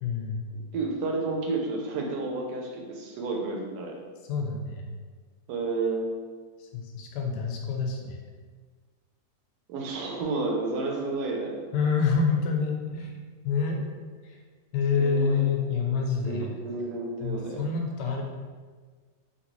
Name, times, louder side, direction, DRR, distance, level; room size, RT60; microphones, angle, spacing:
voice 1, 0.0-0.4 4.3-4.9 6.6-8.2 11.7-13.2 13.4-13.8 14.2-14.4 14.7-16.5 17.2-18.2, left 5 dB, 90° left, 2 dB, 1.2 m, -27 dB
voice 2, 0.5-3.9 5.5-6.1 9.7-11.6 14.9-15.4 16.2-17.6, right 3 dB, 80° right, 0 dB, 1.2 m, -31 dB
3.0 x 2.7 x 2.9 m, 1.5 s
omnidirectional pair, 1.8 m